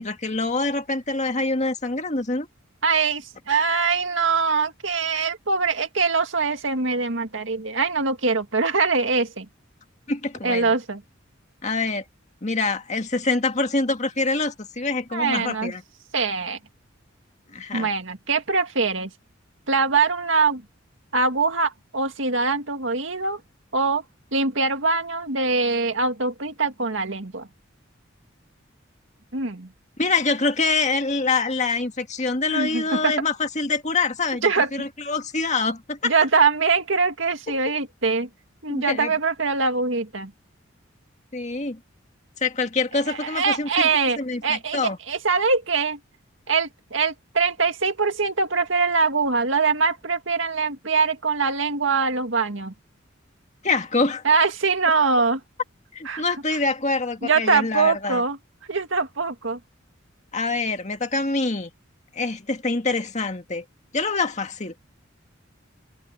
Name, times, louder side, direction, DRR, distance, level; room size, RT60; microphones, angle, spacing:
voice 1, 0.0-2.5 10.1-10.7 11.6-12.0 12.4-15.8 17.5-17.9 30.0-36.1 37.5-37.6 38.7-39.1 41.3-41.8 42.4-43.9 44.2-45.0 53.6-54.2 55.9-58.2 60.3-61.7 62.1-63.6 63.9-64.8, left 3 dB, 35° left, 1.9 m, -25 dB
voice 2, 2.8-9.5 10.4-11.0 15.1-15.7 16.1-16.6 17.7-19.1 19.7-20.6 21.1-23.4 23.7-24.0 24.3-27.5 29.3-29.7 32.5-33.1 34.4-34.9 36.0-38.3 38.6-40.3 43.1-46.0 46.5-52.7 54.2-55.4 56.1-56.2 57.2-58.4 58.7-59.6, right 4 dB, 70° right, 2.1 m, -23 dB
head